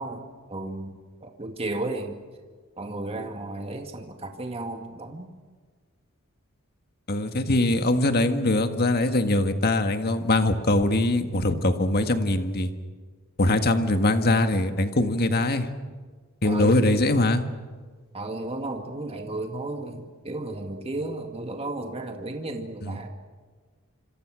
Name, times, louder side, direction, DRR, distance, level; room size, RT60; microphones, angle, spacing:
voice 1, 0.0-2.2 2.8-5.3 16.4-16.9 18.1-23.1, right 2 dB, 30° right, 4 dB, 2.1 m, -34 dB
voice 2, 7.1-12.7 13.4-15.7 16.4-17.4 22.8-23.0, left 1 dB, 45° left, 7 dB, 1.9 m, -22 dB
27.0 x 26.5 x 6.4 m, 1.5 s
head